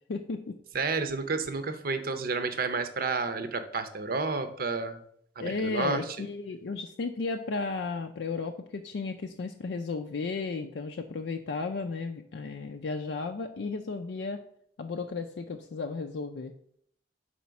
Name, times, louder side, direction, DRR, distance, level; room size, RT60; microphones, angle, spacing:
voice 1, 0.1-0.6 5.4-14.4 14.8-16.5, left 4 dB, 80° left, 4 dB, 0.4 m, -34 dB
voice 2, 0.7-5.0 5.4-6.2, right 4 dB, 55° right, 9 dB, 0.7 m, -31 dB
5.0 x 4.2 x 5.7 m, 0.68 s
head